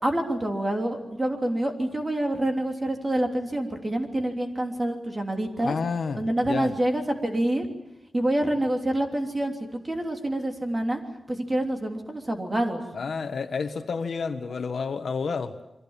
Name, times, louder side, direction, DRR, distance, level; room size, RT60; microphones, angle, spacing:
voice 1, 0.0-5.8 6.1-7.7 8.1-9.6 9.8-11.0 11.3-12.8, right 1 dB, 20° right, 3 dB, 3.2 m, -27 dB
voice 2, 5.6-6.7 12.9-15.5, left 5 dB, 65° left, 8 dB, 1.5 m, -30 dB
29.0 x 23.5 x 7.3 m, 0.90 s
wide cardioid pair, 180°, 0 cm